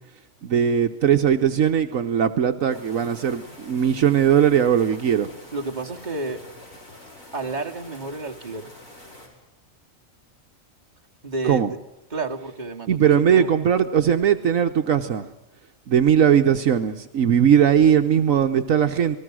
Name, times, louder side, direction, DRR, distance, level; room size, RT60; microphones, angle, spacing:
voice 1, 0.4-5.3 11.4-11.7 12.9-15.3 15.9-19.2, right 8 dB, 70° right, 6 dB, 1.4 m, -19 dB
sound 1, 2.7-9.3, left 1 dB, 70° left, 6.7 m, -46 dB
voice 2, 5.5-6.4 7.3-8.7 11.2-11.8 12.1-13.5, right 2 dB, 30° right, 1 dB, 2.4 m, -30 dB
29.0 x 20.0 x 6.3 m, 0.94 s
omnidirectional pair, 1.4 m